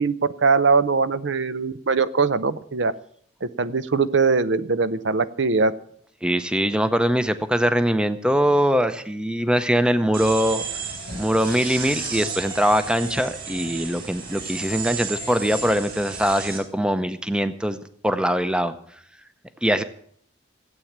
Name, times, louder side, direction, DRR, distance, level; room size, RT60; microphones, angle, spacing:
voice 1, 0.0-2.9 3.4-5.7, right 4 dB, 65° right, 14 dB, 0.7 m, -21 dB
voice 2, 6.2-10.6 11.2-17.8 18.0-18.7 19.6-19.8, equal, 5° right, 11 dB, 0.7 m, -22 dB
sound 1, 10.1-16.6, right 4 dB, 50° right, 4.5 m, -33 dB
16.0 x 8.6 x 7.3 m, 0.62 s
head